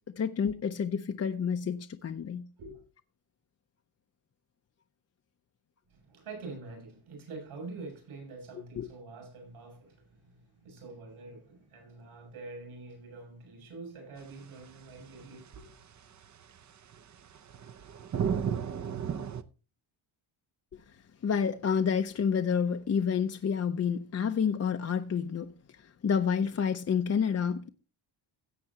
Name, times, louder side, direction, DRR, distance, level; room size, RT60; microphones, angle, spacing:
voice 1, 0.2-2.4 8.8-8.9 20.7-20.8 21.2-25.5 25.8-27.7, left 7 dB, 30° left, 0.6 m, -29 dB
voice 2, 5.9-15.7, right 3 dB, 70° right, 7.1 m, -46 dB
sound 1, 15.0-15.1 15.3-15.4 16.9-19.4, right 7 dB, 35° right, 0.7 m, -32 dB
17.0 x 7.7 x 2.8 m
cardioid pair, 120°, 50 cm